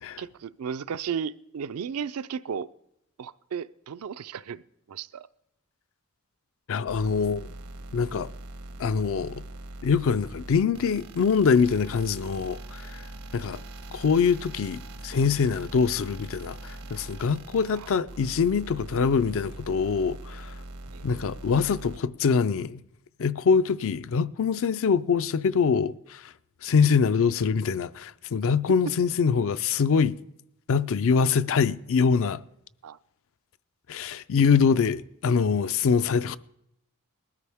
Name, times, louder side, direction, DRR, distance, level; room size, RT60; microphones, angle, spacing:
voice 1, 0.2-2.7 3.2-4.6 4.9-5.3 17.7-17.9 20.9-21.0 32.8-33.0, right 7 dB, 70° right, 0.4 m, -34 dB
voice 2, 6.7-7.5 7.9-8.3 8.8-9.4 9.8-13.0 13.3-13.6 13.9-20.5 21.0-22.8 23.2-26.2 26.6-30.1 30.7-32.4 33.9-36.4, left 5 dB, 60° left, 0.4 m, -24 dB
sound 1, 6.9-22.0, right 1 dB, 90° right, 1.3 m, -42 dB
19.5 x 13.0 x 3.5 m
head